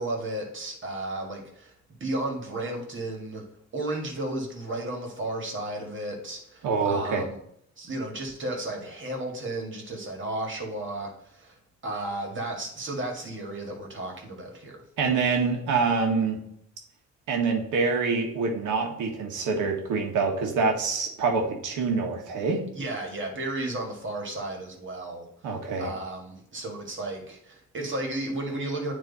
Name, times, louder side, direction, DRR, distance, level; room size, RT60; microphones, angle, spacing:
voice 1, 0.0-3.4 3.7-7.4 7.8-11.6 11.8-14.8 22.7-28.9, right 2 dB, 40° right, 1 dB, 2.0 m, -33 dB
voice 2, 6.6-7.2 15.0-16.4 17.3-22.6 25.4-25.9, right 4 dB, 85° right, 2 dB, 1.5 m, -26 dB
9.2 x 3.2 x 4.1 m, 0.72 s
cardioid pair, 90°, 30 cm